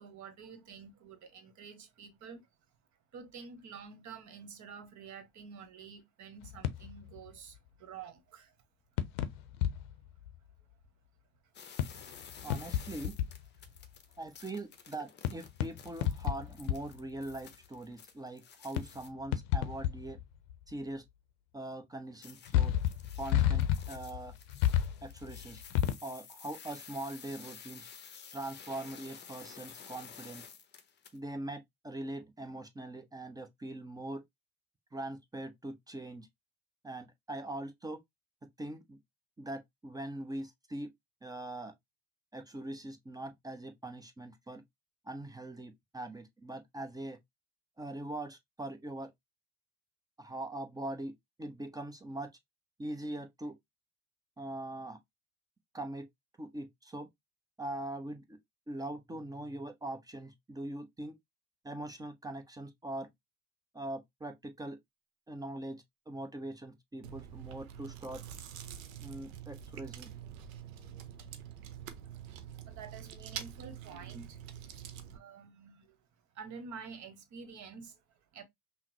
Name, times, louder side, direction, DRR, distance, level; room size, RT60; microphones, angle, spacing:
voice 1, 0.0-2.5 3.1-8.5 72.0-72.4 72.7-74.4 75.1-76.0 76.3-78.4, right 6 dB, 40° right, 1.2 m, -49 dB
sound 1, 6.4-7.2 9.0-9.9 10.3-10.4 11.8-13.4 13.8-13.9 15.2-17.0 17.3-17.4 18.8-19.0 19.3-20.2 20.5-20.6 22.5-25.9, left 11 dB, 55° left, 0.6 m, -31 dB
sound 2, 11.5-19.1 22.2-31.2, left 7 dB, 25° left, 0.8 m, -52 dB
voice 2, 12.4-13.1 14.2-20.2 20.7-21.0 21.5-22.7 23.2-24.3 25.0-25.6 26.0-27.9 28.3-30.5 31.1-34.2 34.9-36.3 36.8-38.0 38.6-39.0 39.4-40.9 41.2-41.7 42.3-44.6 45.1-47.2 47.8-49.1 50.2-51.1 51.4-52.3 52.8-53.6 54.4-55.0 55.7-56.1 56.4-57.1 57.6-58.4 58.7-61.1 61.6-63.1 63.7-64.8 65.3-68.2 69.0-70.1, right 1 dB, 10° right, 0.6 m, -42 dB
Chewing mastication, 67.0-75.2, right 9 dB, 65° right, 0.8 m, -46 dB
5.6 x 2.1 x 3.0 m
figure-of-eight pair, 65°, 43 cm